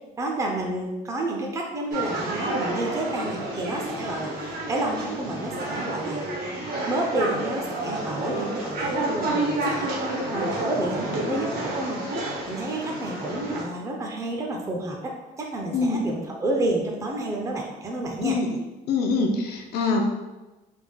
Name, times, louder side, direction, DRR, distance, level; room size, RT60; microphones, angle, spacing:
voice 1, 0.2-6.3 6.9-12.0 12.5-15.1 15.4-18.4, right 2 dB, 20° right, -1 dB, 0.5 m, -30 dB
sound 1, 1.9-13.6, right 1 dB, 65° right, 1.0 m, -30 dB
voice 2, 18.9-20.1, left 4 dB, 75° left, 3 dB, 0.5 m, -24 dB
3.4 x 3.4 x 2.2 m, 1.1 s
cardioid pair, 110°, 17 cm